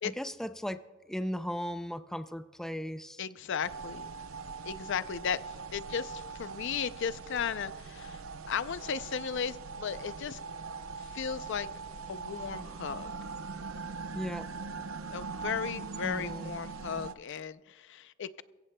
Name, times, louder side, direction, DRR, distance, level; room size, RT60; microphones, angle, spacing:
voice 1, 0.0-0.8 1.1-3.2 14.1-14.5 16.0-16.5, equal, ahead, 10 dB, 0.4 m, -37 dB
voice 2, 3.2-4.1 4.6-10.4 11.0-11.7 12.1-13.1 15.1-18.4, left 7 dB, 65° left, 14 dB, 0.5 m, -36 dB
sound 1, 3.6-17.1, right 4 dB, 85° right, 0.6 m, -41 dB
23.0 x 15.5 x 2.2 m, 1.3 s
head